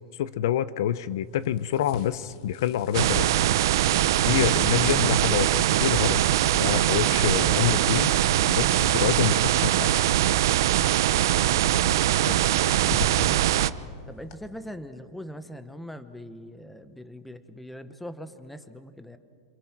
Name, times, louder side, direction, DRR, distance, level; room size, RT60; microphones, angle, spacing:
voice 1, 0.2-3.4 4.2-5.5 5.8-6.3 6.5-8.1 8.5-10.0 12.3-12.4, left 11 dB, 65° left, 16 dB, 0.8 m, -27 dB
sound 1, 0.9-14.4, left 3 dB, 50° left, 2.2 m, -45 dB
sound 2, 2.9-13.7, right 12 dB, 65° right, 0.7 m, -22 dB
voice 2, 13.2-13.6 14.1-19.2, equal, ahead, 10 dB, 1.1 m, -41 dB
27.5 x 27.0 x 6.0 m, 2.2 s
supercardioid pair, 160°, 2 cm